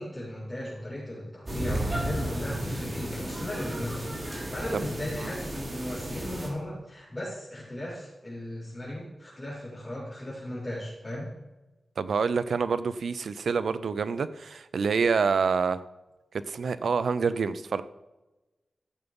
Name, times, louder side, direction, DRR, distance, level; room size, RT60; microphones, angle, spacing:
voice 1, 0.0-11.3, left 1 dB, 20° left, -10 dB, 4.5 m, -36 dB
sound 1, 1.5-6.5, right 1 dB, 35° right, 3.4 m, -33 dB
voice 2, 12.0-15.8 16.5-17.8, right 5 dB, 80° right, 13 dB, 0.6 m, -27 dB
14.5 x 7.1 x 5.3 m, 1.1 s
wide cardioid pair, 110°, 0 cm